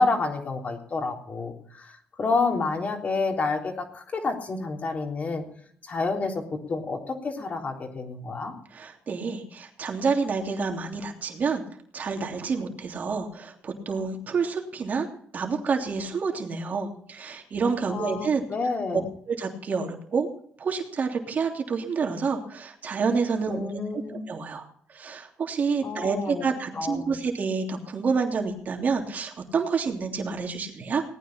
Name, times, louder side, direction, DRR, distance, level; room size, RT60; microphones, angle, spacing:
voice 1, 0.0-5.4 5.8-8.5 17.9-19.1 23.5-24.2 25.8-26.5 26.7-27.2, left 3 dB, 45° left, 2 dB, 3.6 m, -29 dB
voice 2, 8.7-11.6 11.9-15.1 15.3-18.4 19.3-20.3 20.6-23.7 24.3-31.0, right 5 dB, 50° right, 3 dB, 3.1 m, -28 dB
18.5 x 9.6 x 5.8 m, 0.63 s
cardioid pair, 80°, 4 cm